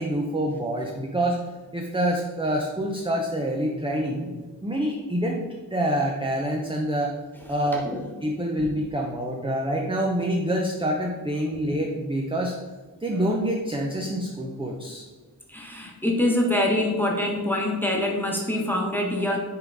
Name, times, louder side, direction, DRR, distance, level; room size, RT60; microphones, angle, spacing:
voice 1, 0.0-1.4 1.7-4.3 4.6-5.4 5.7-7.2 7.5-7.9 8.2-12.5 13.0-15.0, right 1 dB, 15° right, 0 dB, 0.6 m, -26 dB
voice 2, 15.5-19.4, left 1 dB, 5° left, 0 dB, 1.2 m, -25 dB
5.7 x 3.8 x 4.8 m, 1.3 s
wide cardioid pair, 80°, 39 cm